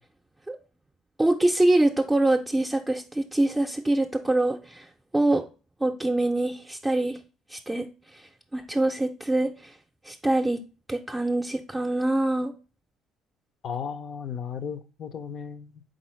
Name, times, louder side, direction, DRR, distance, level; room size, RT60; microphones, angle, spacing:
voice 1, 1.2-5.4 5.8-7.2 7.5-7.9 8.1-8.2 8.5-9.7 10.0-10.6 10.9-12.5, right 2 dB, 15° right, 2 dB, 0.5 m, -24 dB
voice 2, 13.6-15.8, left 7 dB, 55° left, 12 dB, 0.5 m, -35 dB
3.9 x 3.9 x 3.1 m, 0.33 s
hypercardioid pair, 65°, 0 cm